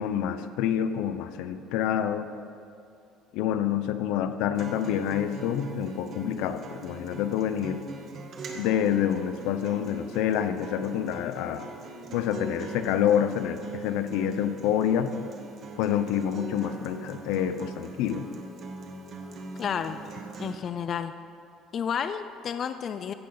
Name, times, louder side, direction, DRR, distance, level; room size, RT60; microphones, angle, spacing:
voice 1, 0.0-2.3 3.3-7.8 8.5-11.7 12.1-15.1 15.8-18.3, left 9 dB, 80° left, 11 dB, 0.7 m, -27 dB
Acoustic guitar, 4.5-20.6, right 3 dB, 45° right, 1.4 m, -42 dB
voice 2, 19.6-20.0 20.4-21.1 21.7-23.1, left 7 dB, 40° left, 10 dB, 0.4 m, -31 dB
14.5 x 10.5 x 4.0 m, 2.5 s
cardioid pair, 125°, 0 cm